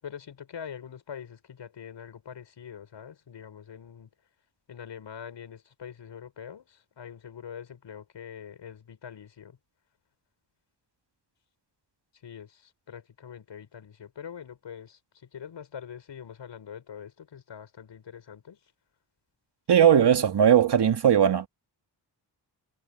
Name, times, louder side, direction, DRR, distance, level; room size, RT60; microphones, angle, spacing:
voice 1, 0.0-4.1 4.7-9.6 12.2-18.6, left 8 dB, 85° left, 6.9 m, -44 dB
voice 2, 19.7-21.5, right 9 dB, 70° right, 2.1 m, -19 dB
cardioid pair, 85°, 42 cm